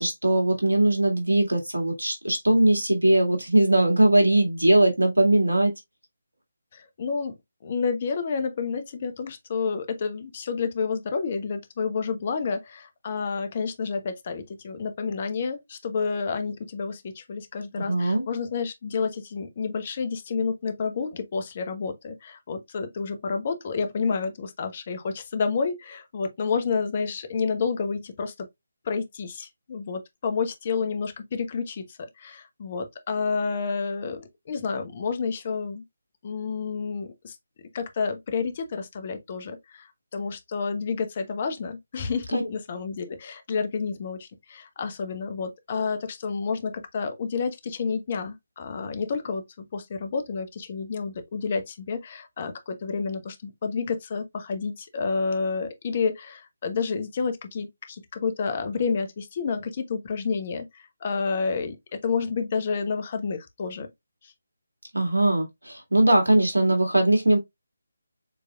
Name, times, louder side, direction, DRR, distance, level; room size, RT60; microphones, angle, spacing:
voice 1, 0.0-5.7 17.8-18.2 42.3-42.5 64.9-67.4, right 1 dB, 80° right, 2.0 m, -20 dB
voice 2, 6.7-7.3 7.6-28.5 28.8-35.8 36.2-37.4 37.7-63.9 64.2-64.3, left 5 dB, 35° left, 0.9 m, -30 dB
7.0 x 3.3 x 2.3 m
figure-of-eight pair, 150°, 0 cm